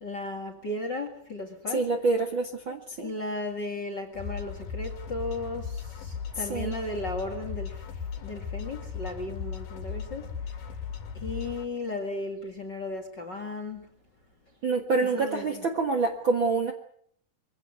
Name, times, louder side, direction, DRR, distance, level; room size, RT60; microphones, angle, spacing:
voice 1, 0.0-1.8 3.0-7.8 8.2-10.3 11.2-13.9 15.1-15.6, left 2 dB, 40° left, 7 dB, 1.8 m, -35 dB
voice 2, 1.7-3.1 6.3-6.7 14.6-16.7, right 3 dB, 50° right, 5 dB, 1.6 m, -27 dB
sound 1, 4.1-11.6, left 6 dB, 70° left, 4.2 m, -37 dB
23.5 x 16.5 x 9.4 m, 0.67 s
omnidirectional pair, 4.4 m